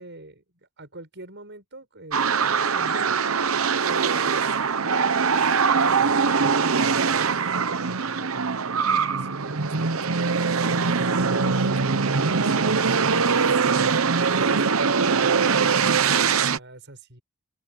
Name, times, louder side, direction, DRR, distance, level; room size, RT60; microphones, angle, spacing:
voice 1, 0.0-3.0 3.8-14.0 14.3-17.2, right 2 dB, 55° right, 6.7 m, -43 dB
sound 1, 2.1-16.6, right 5 dB, 70° right, 0.9 m, -22 dB
open air
head